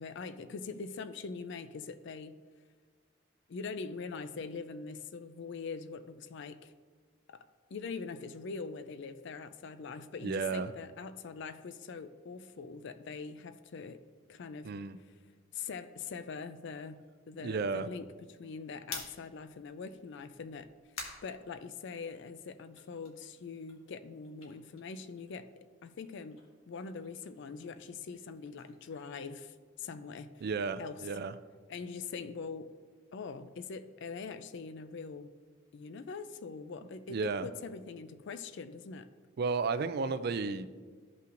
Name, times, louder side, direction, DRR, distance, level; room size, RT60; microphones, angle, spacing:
voice 1, 0.0-2.4 3.5-6.7 7.3-7.4 7.7-14.0 14.3-14.7 15.5-20.7 21.2-25.5 25.8-26.4 26.7-30.4 30.8-31.0 31.7-32.7 33.1-35.3 35.7-39.1, left 5 dB, 60° left, 11 dB, 0.4 m, -43 dB
voice 2, 10.2-10.7 14.6-15.0 17.4-17.9 30.4-31.4 37.1-37.5 39.4-40.8, right 4 dB, 50° right, 12 dB, 0.4 m, -33 dB
sound 1, 18.8-22.2 22.6-25.6 25.8-30.0, left 4 dB, 80° left, 1.5 m, -50 dB
14.5 x 5.6 x 2.5 m, 1.5 s
head